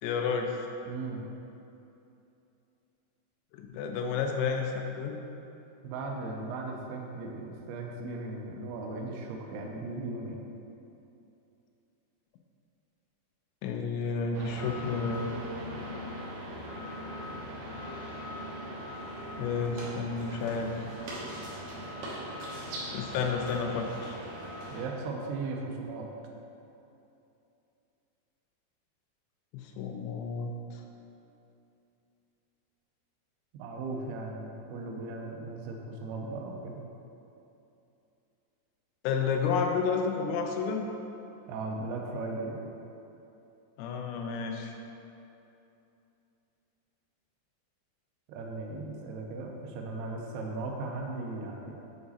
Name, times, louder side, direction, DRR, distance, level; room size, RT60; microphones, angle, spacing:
voice 1, 0.0-0.5 3.5-5.2 13.6-15.3 19.4-20.7 22.9-24.2 29.5-30.8 39.0-40.9 43.8-44.7, left 5 dB, 90° left, 3 dB, 3.0 m, -31 dB
voice 2, 0.9-1.3 5.8-10.4 24.7-26.1 33.5-36.8 41.5-42.7 48.3-51.7, right 3 dB, 90° right, 1 dB, 2.3 m, -37 dB
sound 1, 14.3-24.8, equal, 70° right, 2.1 m, -40 dB
7.1 x 4.8 x 4.1 m, 2.8 s
omnidirectional pair, 5.3 m